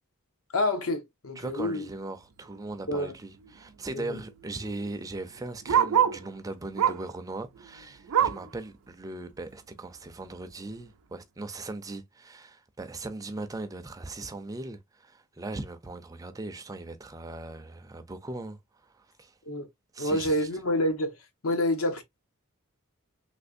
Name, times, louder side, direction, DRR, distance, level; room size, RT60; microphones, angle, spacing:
voice 1, 0.5-1.9 2.9-3.1 3.9-4.2 19.5-19.7 20.0-21.1 21.4-22.0, left 1 dB, 75° left, 0.9 m, -28 dB
voice 2, 1.4-19.3 19.9-20.5, right 2 dB, 15° right, 0.4 m, -39 dB
Bark, 2.6-2.8 3.1-3.2 3.4-6.3 6.7-7.2 7.5-8.5 9.0-9.1 9.5-9.6 10.3-10.4, right 9 dB, 80° right, 0.4 m, -27 dB
3.3 x 3.2 x 2.5 m
head